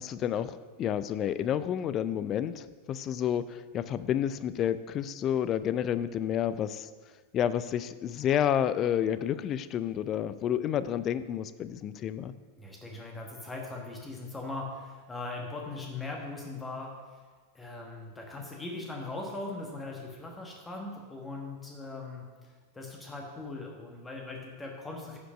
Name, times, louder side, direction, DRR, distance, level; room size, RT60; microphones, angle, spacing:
voice 1, 0.0-6.9 7.3-12.3, left 10 dB, 30° left, 14 dB, 0.4 m, -30 dB
voice 2, 12.6-16.9 17.5-25.2, left 2 dB, 15° left, 0 dB, 1.4 m, -40 dB
9.8 x 5.2 x 6.2 m, 1.5 s
figure-of-eight pair, 90°, 0 cm